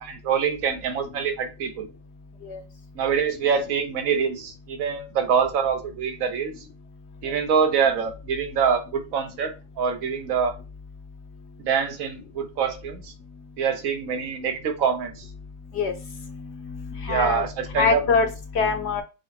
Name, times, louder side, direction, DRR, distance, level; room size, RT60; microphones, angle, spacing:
voice 1, 0.0-1.9 3.0-6.5 7.2-9.5 9.8-10.5 11.6-13.1 13.6-15.3 17.1-17.5 17.7-18.0, right 6 dB, 75° right, 6 dB, 1.1 m, -25 dB
voice 2, 15.7-17.5 17.7-18.3 18.5-19.0, left 5 dB, 60° left, 6 dB, 0.8 m, -25 dB
4.7 x 2.1 x 4.1 m, 0.30 s
omnidirectional pair, 1.5 m